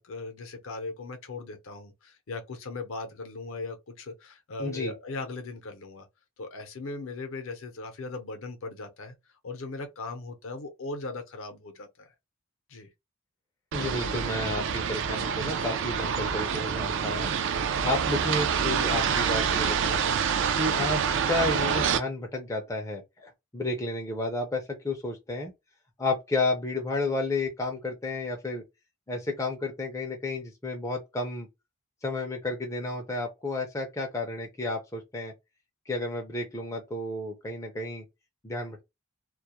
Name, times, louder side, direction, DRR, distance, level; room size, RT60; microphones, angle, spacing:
voice 1, 0.0-6.1 6.4-9.1 9.4-12.1 12.7-12.9, left 3 dB, 60° left, 0.6 m, -38 dB
voice 2, 4.6-4.9 13.7-17.3 17.8-20.0 20.6-25.5 26.0-28.6 29.1-31.5 32.0-35.3 35.9-38.1 38.4-38.8, left 2 dB, 15° left, 0.4 m, -31 dB
sound 1, 13.7-22.0, right 7 dB, 55° right, 0.3 m, -27 dB
2.3 x 2.0 x 2.8 m
head